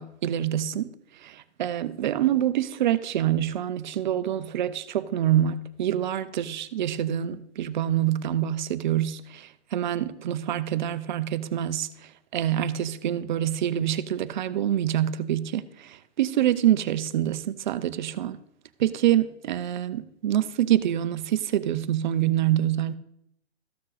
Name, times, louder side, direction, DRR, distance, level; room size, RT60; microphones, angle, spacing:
voice 1, 0.0-18.4 18.8-22.9, right 11 dB, 45° right, 0.6 m, -26 dB
14.0 x 6.4 x 4.0 m
hypercardioid pair, 150°, 34 cm